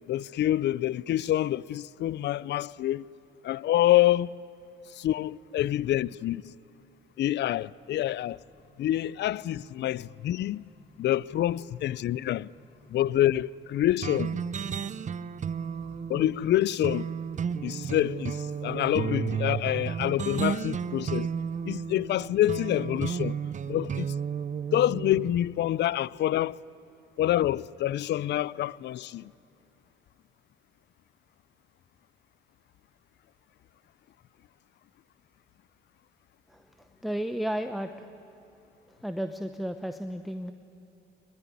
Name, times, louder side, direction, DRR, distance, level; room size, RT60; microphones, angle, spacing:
voice 1, 0.1-3.1 3.4-4.3 4.9-6.5 7.2-8.4 8.8-10.6 11.0-12.5 12.9-14.4 16.1-17.1 17.6-21.3 21.7-23.4 23.7-24.1 24.7-26.6 27.2-29.3, left 13 dB, 60° left, 0.4 m, -27 dB
Accelerating revving vroom, 7.9-23.4, left 2 dB, 30° left, 2.7 m, -60 dB
sound 1, 14.0-25.3, right 7 dB, 40° right, 0.6 m, -33 dB
voice 2, 36.5-38.1 39.0-40.5, equal, ahead, 0.9 m, -33 dB
21.0 x 21.0 x 9.7 m
cardioid pair, 90°, 20 cm